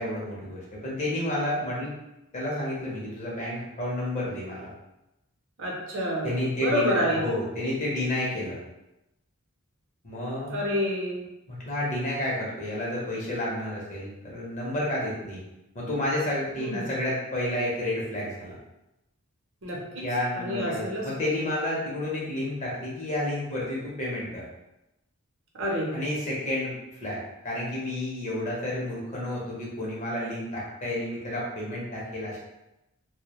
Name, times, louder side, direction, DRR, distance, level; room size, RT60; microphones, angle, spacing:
voice 1, 0.0-1.9 2.3-4.7 6.2-8.6 10.0-10.6 11.5-15.4 15.7-18.6 20.0-24.5 25.9-26.7 27.0-32.4, left 1 dB, 35° left, -4 dB, 0.6 m, -30 dB
voice 2, 5.6-7.2 10.5-11.2 16.6-16.9 19.6-20.0 20.4-21.4 25.6-26.0, equal, 60° right, -3 dB, 0.6 m, -29 dB
2.2 x 2.0 x 2.9 m, 0.91 s
head